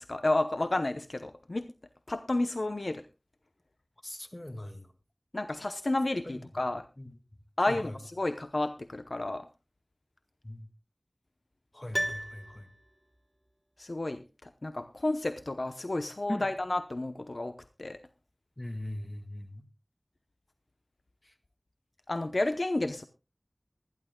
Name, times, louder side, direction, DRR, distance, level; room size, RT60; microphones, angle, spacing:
voice 1, 0.0-1.7 2.1-3.0 5.3-6.8 7.6-7.9 8.2-9.5 13.8-14.2 14.6-18.0 22.1-23.0, left 2 dB, 70° left, 9 dB, 0.8 m, -31 dB
voice 2, 4.0-4.9 6.2-6.4 7.0-7.1 7.6-8.0 10.4-10.7 11.7-12.7 16.3-16.5 18.6-19.6 21.2-21.3, left 1 dB, 35° left, 7 dB, 1.8 m, -40 dB
Piano, 11.9-13.2 13.5-13.6, right 1 dB, 15° right, 1.3 m, -35 dB
24.0 x 11.0 x 2.2 m, 0.27 s
wide cardioid pair, 50°, 0 cm